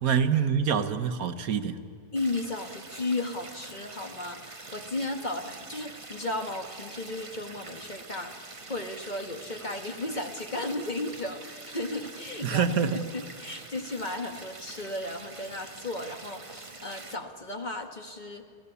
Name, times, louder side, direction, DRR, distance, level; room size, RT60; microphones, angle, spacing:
voice 1, 0.0-1.8 12.4-13.0, right 7 dB, 75° right, 10 dB, 1.4 m, -25 dB
voice 2, 2.1-18.4, left 2 dB, 30° left, 5 dB, 1.3 m, -35 dB
sound 1, 2.2-17.1, right 3 dB, 25° right, 1.1 m, -45 dB
29.5 x 16.0 x 6.9 m, 2.1 s
omnidirectional pair, 1.6 m